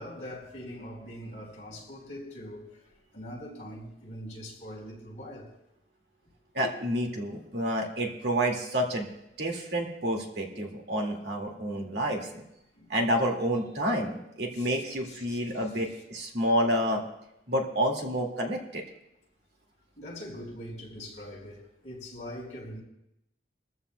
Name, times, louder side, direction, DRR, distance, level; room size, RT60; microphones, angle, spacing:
voice 1, 0.0-2.9 3.1-5.5 12.7-12.9 14.5-14.7 15.0-15.9 20.0-22.8, equal, 40° left, 4.5 m, -42 dB
voice 2, 6.5-9.1 9.4-12.4 12.9-17.0 17.5-18.9, equal, 75° right, 2.1 m, -29 dB
22.5 x 14.0 x 2.2 m
head